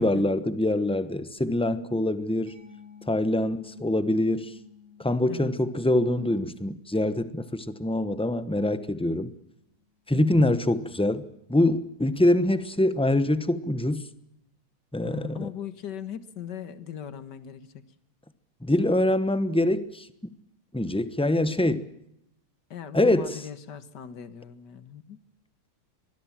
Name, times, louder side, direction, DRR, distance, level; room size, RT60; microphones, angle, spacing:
voice 1, 0.0-2.5 3.1-4.5 5.0-9.3 10.1-11.2 11.5-14.0 14.9-15.5 18.6-20.1 20.7-21.9 22.9-23.4, left 1 dB, 5° left, 0.5 m, -24 dB
Mallet percussion, 2.5-9.9, left 7 dB, 80° right, 8.2 m, -54 dB
voice 2, 10.1-10.5 15.0-17.8 22.7-25.2, left 9 dB, 55° left, 2.0 m, -39 dB
24.5 x 20.5 x 7.5 m
omnidirectional pair, 2.3 m